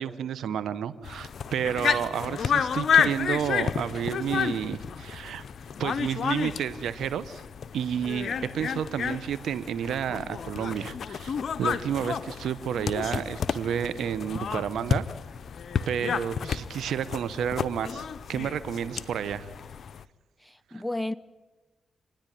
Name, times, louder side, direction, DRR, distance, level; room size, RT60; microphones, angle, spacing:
voice 1, 0.0-5.4 5.8-7.4 7.7-15.0 15.9-19.5, right 8 dB, 85° right, 1.0 m, -31 dB
sound 1, 1.0-20.0, left 7 dB, 65° left, 0.6 m, -31 dB
voice 2, 20.4-21.1, left 1 dB, ahead, 0.7 m, -33 dB
27.5 x 10.5 x 10.0 m
supercardioid pair, 55°, 0 cm